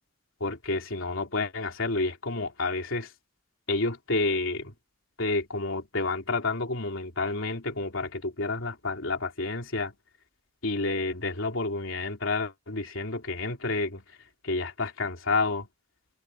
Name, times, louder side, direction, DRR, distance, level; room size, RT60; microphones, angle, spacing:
voice 1, 0.4-3.1 3.7-4.7 5.2-9.9 10.6-14.0 14.4-15.7, left 3 dB, 75° left, 3.5 m, -29 dB
head